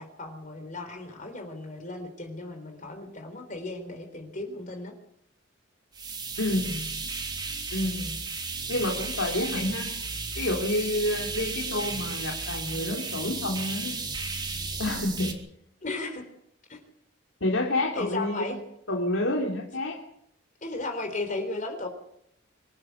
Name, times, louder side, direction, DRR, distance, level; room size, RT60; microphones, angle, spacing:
voice 1, 0.0-4.9 15.8-16.3 16.7-16.8 17.9-18.6 20.6-21.9, left 2 dB, 40° left, 5 dB, 3.7 m, -35 dB
sound 1, 5.9-15.3, right 4 dB, 20° right, 3.2 m, -34 dB
voice 2, 6.4-6.9 7.7-8.2 8.7-9.9 10.3-14.0 14.8-15.3 17.4-18.6 18.9-20.0, left 1 dB, 85° left, -1 dB, 3.3 m, -29 dB
25.5 x 13.0 x 8.1 m, 0.74 s
head